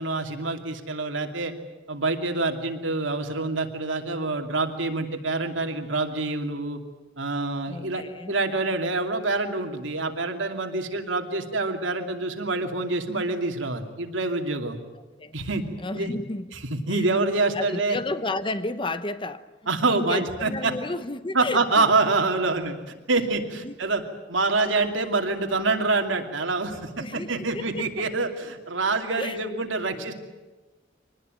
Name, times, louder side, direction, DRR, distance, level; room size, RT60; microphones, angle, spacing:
voice 1, 0.0-1.5 1.9-6.8 7.2-14.8 15.3-15.6 15.9-16.1 16.5-18.0 19.7-20.7 21.3-22.7 23.1-24.0 24.3-30.1, right 3 dB, 85° right, 2.7 m, -26 dB
voice 2, 7.7-8.3 15.2-15.5 15.8-16.5 16.9-17.0 17.5-19.5 19.9-21.9 23.6-23.7 27.0-27.9 29.2-29.6 29.9-30.1, left 2 dB, 25° left, 0.9 m, -32 dB
25.0 x 19.5 x 9.2 m
head